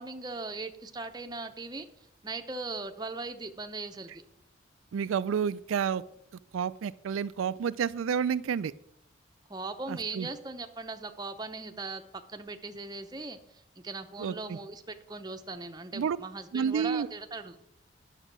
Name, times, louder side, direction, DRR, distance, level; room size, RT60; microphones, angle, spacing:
voice 1, 0.0-1.9 2.2-4.2 9.5-12.0 12.3-13.4 13.8-17.6, right 3 dB, 20° right, 7 dB, 0.7 m, -39 dB
voice 2, 4.9-6.0 6.5-8.7 9.9-10.3 14.2-14.6 15.9-16.2 16.5-17.1, right 7 dB, 85° right, 15 dB, 0.4 m, -30 dB
10.0 x 7.3 x 6.1 m, 0.76 s
head